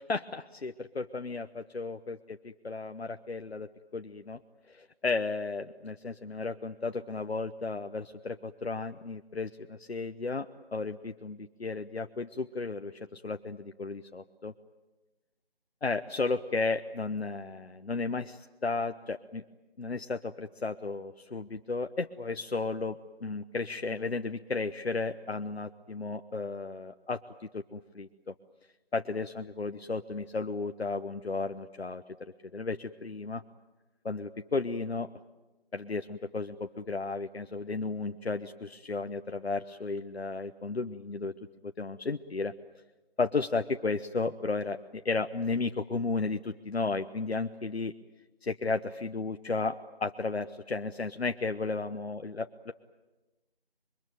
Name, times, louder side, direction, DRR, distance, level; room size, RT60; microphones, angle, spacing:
voice 1, 0.0-4.4 4.7-10.5 10.7-14.5 15.8-19.4 19.8-27.2 27.5-28.3 28.9-33.4 34.0-35.1 35.7-41.3 41.6-42.5 43.2-47.9 48.5-52.7, left 3 dB, 80° left, 7 dB, 1.1 m, -34 dB
25.0 x 23.0 x 9.3 m, 1.1 s
figure-of-eight pair, 180°, 31 cm